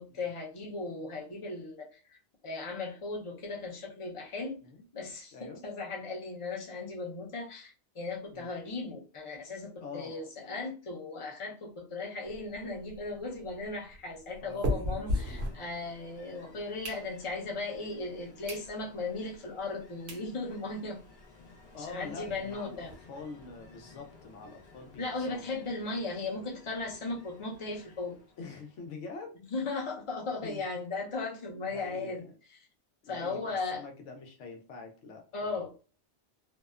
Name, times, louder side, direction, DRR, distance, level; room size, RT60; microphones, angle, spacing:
voice 1, 0.0-2.2 2.4-4.6 4.9-21.0 21.8-22.9 25.0-28.2 29.5-32.3 33.1-33.8 35.3-35.7, left 3 dB, 35° left, 0.6 m, -37 dB
voice 2, 5.3-5.6 8.3-8.5 9.8-10.1 14.4-14.6 21.7-25.4 28.4-29.4 30.4-30.6 31.7-32.3 33.0-35.6, left 4 dB, 85° left, 1.0 m, -45 dB
sound 1, 12.3-16.2 16.6-17.5 18.0-18.1 18.4-18.7 19.1-19.2 19.8-19.9 20.1-20.3 20.7-20.8 21.0-21.1 21.4-21.5 21.8-23.0, left 1 dB, 65° right, 1.0 m, -37 dB
Ocean, 14.9-29.0, left 3 dB, 60° left, 1.0 m, -57 dB
2.7 x 2.1 x 2.3 m
omnidirectional pair, 1.2 m